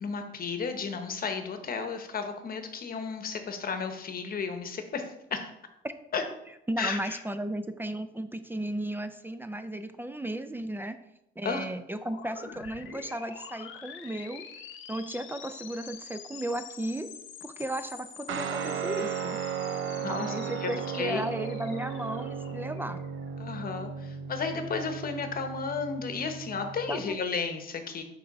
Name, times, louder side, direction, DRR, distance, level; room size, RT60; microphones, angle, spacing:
voice 1, 0.0-5.1 5.3-5.4 6.1-6.2 6.8-7.2 11.4-11.6 20.0-20.3 20.6-21.2 23.4-28.0, left 5 dB, 45° left, 6 dB, 1.0 m, -33 dB
voice 2, 6.7-11.0 11.4-14.5 14.9-17.1 17.4-19.4 20.1-23.0 26.9-27.2, right 1 dB, 10° right, 10 dB, 0.4 m, -35 dB
sound 1, 11.9-23.6, left 7 dB, 80° left, 0.8 m, -47 dB
Guitar, 18.3-27.1, right 6 dB, 80° right, 0.6 m, -36 dB
6.3 x 3.4 x 4.7 m, 0.84 s
cardioid pair, 90°, 20 cm